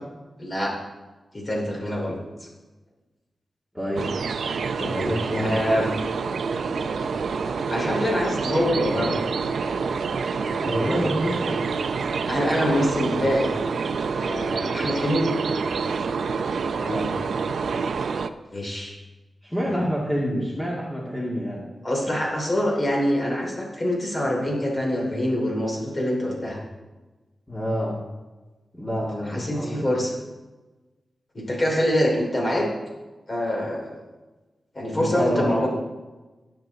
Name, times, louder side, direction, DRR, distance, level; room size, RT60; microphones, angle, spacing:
voice 1, 0.4-0.7 1.3-2.2 4.8-5.1 5.3-5.9 7.7-9.2 10.3-11.0 12.3-13.5 14.2-15.3 18.5-18.9 19.6-19.7 21.8-26.6 29.3-30.1 31.3-32.7 33.3-34.0 34.7-35.7, equal, 35° left, -2 dB, 2.8 m, -25 dB
voice 2, 3.7-4.1 5.1-5.6 10.7-11.6 16.8-17.2 19.4-21.6 22.0-22.1 27.5-28.0 28.7-29.9 34.9-35.6, equal, 10° left, -6 dB, 2.1 m, -27 dB
sound 1, 4.0-18.3, right 5 dB, 85° right, 0.5 m, -27 dB
18.0 x 7.1 x 4.0 m, 1.2 s
wide cardioid pair, 120°, 0 cm